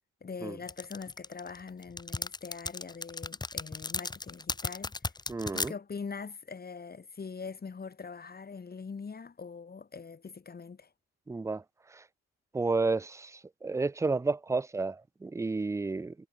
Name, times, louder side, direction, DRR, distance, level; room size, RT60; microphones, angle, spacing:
voice 1, 0.2-4.9 5.5-10.9, left 5 dB, 30° left, 2.5 m, -42 dB
sound 1, 0.7-5.7, left 3 dB, 15° left, 0.8 m, -35 dB
voice 2, 5.3-5.7 11.3-11.6 11.9-12.0 12.5-16.1, right 3 dB, 10° right, 0.4 m, -31 dB
cardioid pair, 90°, 30 cm